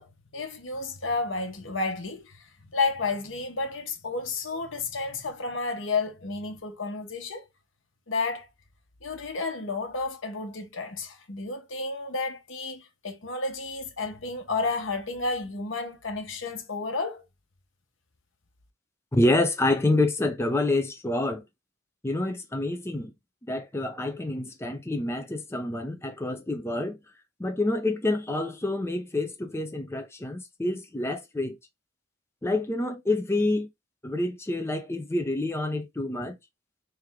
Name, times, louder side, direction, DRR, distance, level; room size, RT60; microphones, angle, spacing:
voice 1, 0.0-7.5 8.1-8.5 9.0-17.2, left 3 dB, 70° left, 1.1 m, -31 dB
voice 2, 19.1-21.4 22.0-23.1 23.4-27.0 27.4-31.6 32.4-33.7 34.0-36.4, left 2 dB, 15° left, 0.5 m, -27 dB
3.4 x 3.4 x 3.5 m
head